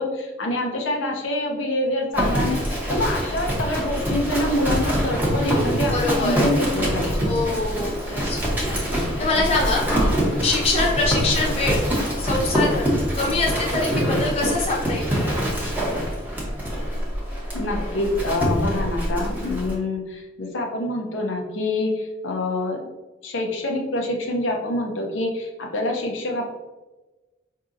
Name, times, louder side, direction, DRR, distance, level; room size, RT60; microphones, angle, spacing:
voice 1, 0.0-7.4 17.5-22.9 23.2-26.5, left 1 dB, 80° left, 0 dB, 0.6 m, -26 dB
Livestock farm animals working animals, 2.1-19.7, equal, 10° right, 0.7 m, -24 dB
voice 2, 5.9-6.4 7.2-9.9 10.4-11.9 12.2-15.4, left 3 dB, 30° left, -3 dB, 0.7 m, -25 dB
4.8 x 2.7 x 2.4 m, 1.1 s
head